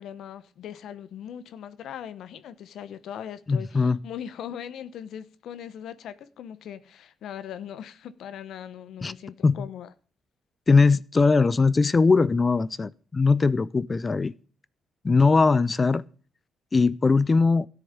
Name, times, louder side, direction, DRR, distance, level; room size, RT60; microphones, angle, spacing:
voice 1, 0.0-9.9, left 9 dB, 75° left, 0.9 m, -40 dB
voice 2, 3.5-4.0 9.0-9.1 9.4-9.6 10.7-14.3 15.0-16.0 16.7-17.7, left 4 dB, 30° left, 0.5 m, -20 dB
13.0 x 7.0 x 8.7 m
cardioid pair, 90°, 0 cm